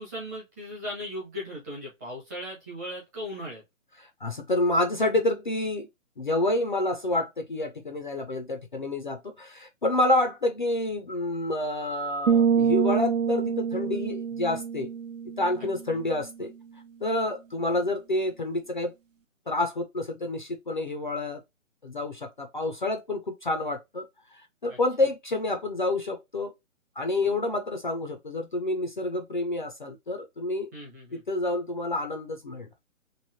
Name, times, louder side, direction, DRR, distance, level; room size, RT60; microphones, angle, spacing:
voice 1, 0.0-3.6 24.7-24.8 30.7-31.2, left 1 dB, 15° right, 0.7 m, -37 dB
voice 2, 4.2-5.9 6.2-14.9 15.4-16.5 17.0-18.9 19.5-21.4 21.8-24.1 24.3-26.5 27.0-30.7 31.1-32.7, left 2 dB, 40° left, 0.4 m, -28 dB
sound 1, 12.3-16.0, right 7 dB, 70° right, 0.7 m, -26 dB
3.1 x 2.6 x 2.5 m
hypercardioid pair, 155°, 40 cm